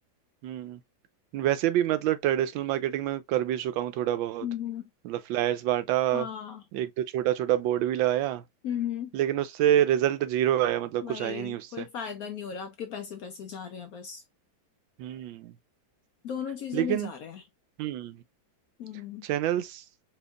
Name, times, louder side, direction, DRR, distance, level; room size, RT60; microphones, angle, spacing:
voice 1, 0.4-0.8 1.3-4.5 5.0-6.3 6.7-8.4 9.1-11.8 15.0-15.5 16.7-17.1 17.8-18.2 19.2-19.8, right 12 dB, 90° right, 1.4 m, -27 dB
voice 2, 4.4-4.8 6.1-6.6 8.6-9.1 11.0-14.2 16.2-17.4 18.8-19.3, left 8 dB, 70° left, 0.9 m, -36 dB
4.4 x 2.9 x 2.3 m
omnidirectional pair, 2.1 m